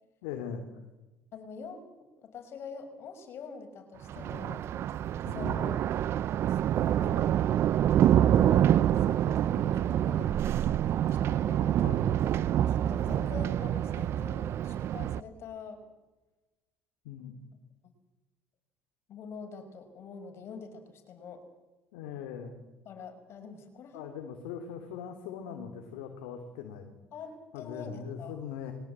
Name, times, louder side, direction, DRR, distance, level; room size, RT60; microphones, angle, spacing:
voice 1, 0.2-0.6 5.2-5.5 11.8-12.2 17.0-17.3 21.9-22.6 23.9-26.9 27.5-28.7, left 8 dB, 85° left, 4 dB, 2.9 m, -40 dB
voice 2, 1.3-4.6 5.3-5.8 6.4-6.7 7.0-7.4 8.0-11.8 12.7-15.8 17.8-17.9 19.1-21.4 22.8-24.1 27.1-28.4, left 5 dB, 55° left, 7 dB, 5.8 m, -45 dB
Thunder, 4.0-15.2, right 11 dB, 55° right, 0.7 m, -26 dB
22.0 x 18.5 x 8.8 m, 1.1 s
supercardioid pair, 85°, 5 cm